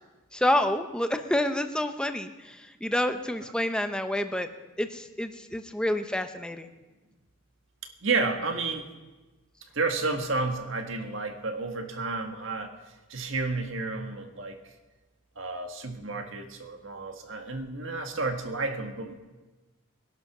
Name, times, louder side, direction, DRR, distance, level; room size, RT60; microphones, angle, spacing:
voice 1, 0.3-4.5 4.8-6.7, left 1 dB, 5° left, 7 dB, 0.8 m, -28 dB
voice 2, 8.0-8.9 9.7-12.8 13.1-14.6 15.4-19.1, right 3 dB, 65° right, 5 dB, 1.8 m, -31 dB
21.5 x 11.0 x 6.1 m, 1.2 s
head